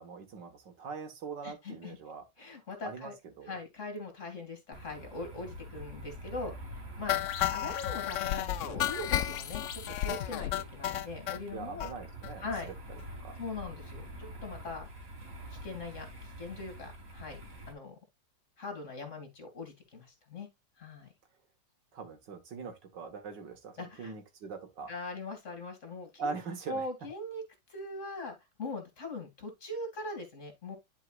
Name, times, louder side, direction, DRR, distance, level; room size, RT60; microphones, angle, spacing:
voice 1, 0.0-3.1 3.4-3.5 11.5-12.7 13.2-13.4 21.9-24.9 26.2-26.9, right 5 dB, 75° right, 2.1 m, -42 dB
voice 2, 1.4-2.0 2.4-3.1 3.5-7.2 7.5-11.9 12.4-12.7 13.4-14.9 15.5-18.0 18.6-20.5 20.8-21.1 23.8-24.1 24.9-26.4 26.7-27.4 27.7-30.8, left 2 dB, 40° left, 2.7 m, -41 dB
sound 1, 4.7-17.7, right 1 dB, 50° right, 2.5 m, -46 dB
sound 2, 7.1-11.4 11.8-11.9 12.2-12.3 12.6-12.7 13.0-13.1, left 12 dB, 90° left, 0.6 m, -32 dB
11.0 x 4.7 x 2.4 m
omnidirectional pair, 2.0 m